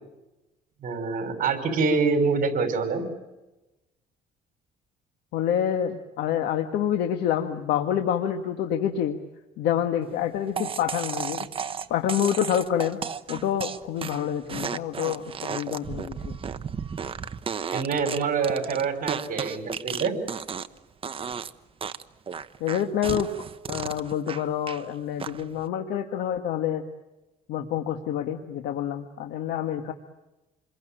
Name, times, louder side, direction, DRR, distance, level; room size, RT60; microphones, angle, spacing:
voice 1, 0.8-3.0 17.7-20.1, right 4 dB, 55° right, 7 dB, 5.5 m, -25 dB
voice 2, 5.3-9.2 9.6-11.5 11.9-13.0 13.3-16.4 22.6-23.3 23.7-26.8 27.5-29.9, left 9 dB, 80° left, 5 dB, 1.8 m, -27 dB
sound 1, 10.6-20.8 21.0-21.5 21.8-24.8 25.2-25.6, right 6 dB, 35° right, 1.1 m, -34 dB
28.0 x 22.0 x 9.0 m, 1.0 s
cardioid pair, 110°, 17 cm